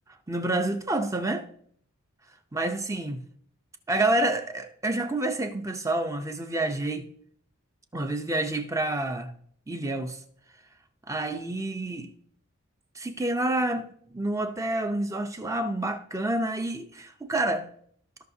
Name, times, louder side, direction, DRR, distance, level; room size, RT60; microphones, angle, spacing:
voice 1, 0.3-1.5 2.5-3.2 3.9-7.1 7.9-9.3 9.7-10.2 11.1-12.1 12.9-17.7, right 2 dB, 15° right, 0.6 m, -28 dB
15.0 x 5.7 x 2.7 m
head